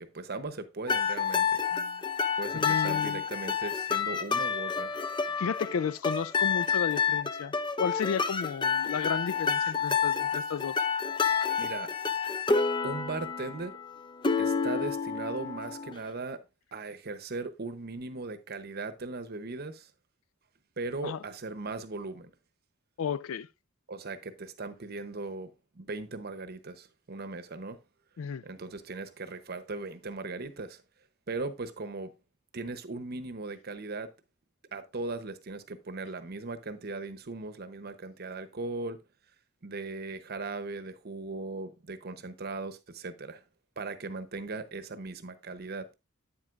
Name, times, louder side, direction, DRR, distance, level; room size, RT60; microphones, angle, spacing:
voice 1, 0.0-2.0 2.4-4.9 11.6-11.9 12.8-13.8 14.4-16.4 16.7-19.9 20.8-22.3 23.9-25.5 25.7-27.8 28.4-30.8 31.3-32.1 32.5-34.1 34.7-39.0 39.6-43.4 43.8-45.9, right 3 dB, 50° right, 0.8 m, -38 dB
sound 1, 0.9-16.0, left 6 dB, 20° left, 0.5 m, -29 dB
voice 2, 2.5-3.2 5.4-10.8 21.0-21.2 23.0-23.5 28.2-28.4, left 6 dB, 80° left, 0.4 m, -33 dB
8.9 x 7.7 x 2.5 m
head